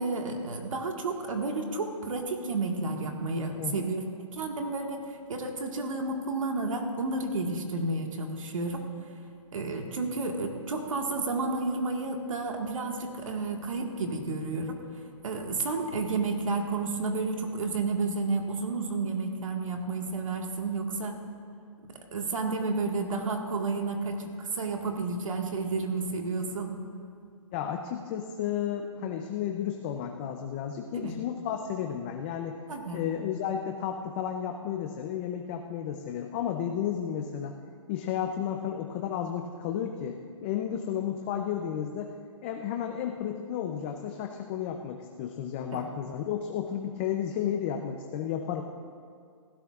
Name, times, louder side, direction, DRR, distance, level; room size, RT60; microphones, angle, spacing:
voice 1, 0.0-4.1 4.3-8.8 9.5-14.8 15.2-21.2 22.1-26.8 30.9-31.2 32.7-33.0 45.7-45.8, right 3 dB, 75° right, 3 dB, 1.6 m, -31 dB
voice 2, 27.5-32.6 32.9-37.5 37.9-42.1 42.4-48.6, left 9 dB, 20° left, 4 dB, 0.5 m, -32 dB
18.0 x 16.0 x 2.4 m, 2.2 s
hypercardioid pair, 160°, 17 cm